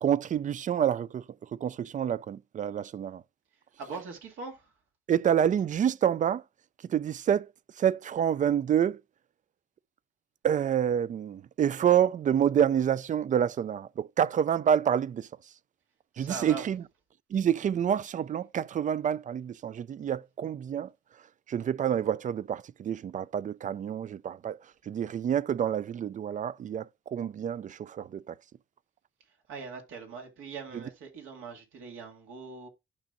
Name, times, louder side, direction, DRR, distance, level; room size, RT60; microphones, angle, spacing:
voice 1, 0.0-3.2 3.8-4.0 5.1-6.4 6.8-9.0 10.4-15.5 16.2-16.9 17.3-20.9 21.5-28.4 30.7-30.9, right 9 dB, 40° right, 0.4 m, -28 dB
voice 2, 3.8-4.6 16.2-16.6 29.5-32.7, right 4 dB, 85° right, 2.3 m, -41 dB
12.0 x 5.2 x 2.5 m
cardioid pair, 90°, 20 cm